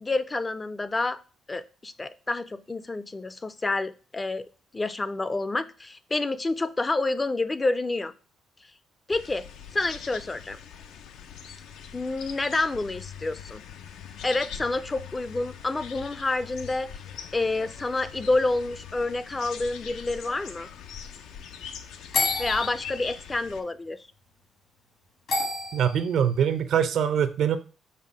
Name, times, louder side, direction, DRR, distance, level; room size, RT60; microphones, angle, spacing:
voice 1, 0.0-1.2 1.5-4.4 4.7-8.1 9.1-9.4 9.7-10.6 11.9-13.6 14.2-16.9 17.3-20.7 22.4-24.0, left 2 dB, 25° left, 13 dB, 0.3 m, -28 dB
sound 1, 9.1-23.6, left 8 dB, 85° left, 0.4 m, -42 dB
sound 2, 22.1-23.0 25.3-26.1, left 3 dB, 65° left, 1.6 m, -29 dB
voice 2, 25.7-27.6, right 8 dB, 70° right, 11 dB, 0.5 m, -23 dB
5.5 x 2.0 x 4.7 m, 0.35 s
cardioid pair, 90°, 0 cm